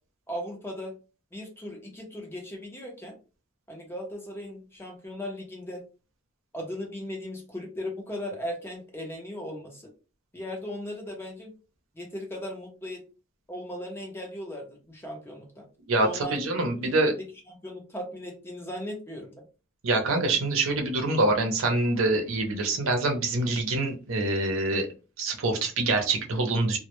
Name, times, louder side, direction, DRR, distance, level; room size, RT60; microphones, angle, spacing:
voice 1, 0.3-0.9 1.3-3.2 3.7-5.8 6.5-9.9 10.3-11.5 11.9-13.0 13.5-15.6 16.0-16.4 16.8-17.2 17.5-19.3, equal, 10° left, 0 dB, 0.6 m, -37 dB
voice 2, 15.9-17.1 19.8-24.9 25.2-26.8, right 2 dB, 85° right, 3 dB, 0.6 m, -25 dB
2.1 x 2.0 x 2.9 m, 0.33 s
head